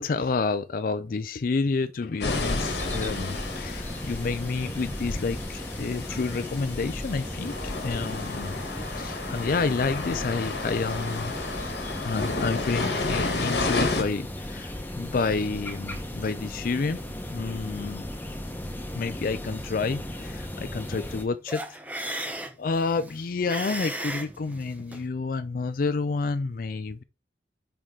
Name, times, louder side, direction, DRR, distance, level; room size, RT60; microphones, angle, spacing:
voice 1, 0.0-7.6 7.8-11.3 12.0-17.0 17.3-18.0 18.9-22.3 22.6-27.0, left 4 dB, 50° left, 0.4 m, -29 dB
sound 1, 2.2-14.0, left 3 dB, 70° left, 1.3 m, -32 dB
sound 2, 2.3-21.2, left 1 dB, 10° left, 1.0 m, -36 dB
sound 3, 21.5-25.1, right 1 dB, 10° right, 0.7 m, -36 dB
5.7 x 4.8 x 3.7 m
head